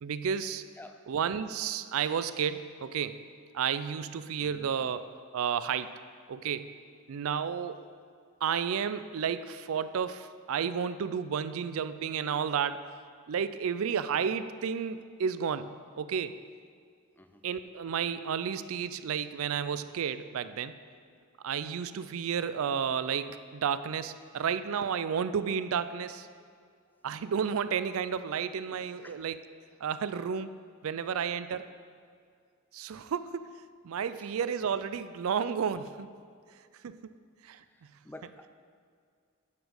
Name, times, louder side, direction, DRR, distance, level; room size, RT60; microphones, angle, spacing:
voice 1, 0.0-0.6 1.1-3.2 3.5-5.1 5.3-5.9 6.3-6.7 7.1-7.8 8.4-12.9 13.3-16.3 17.4-20.7 21.4-26.3 27.0-29.4 29.8-30.5 30.8-31.7 32.7-33.5 33.8-36.1 36.8-37.1 37.4-37.6, right 7 dB, 65° right, 13 dB, 0.4 m, -32 dB
voice 2, 4.3-4.7 17.2-17.4 29.0-29.1 34.2-34.3 37.6-38.5, left 1 dB, 10° left, 7 dB, 0.4 m, -50 dB
9.7 x 5.0 x 6.5 m, 2.2 s
head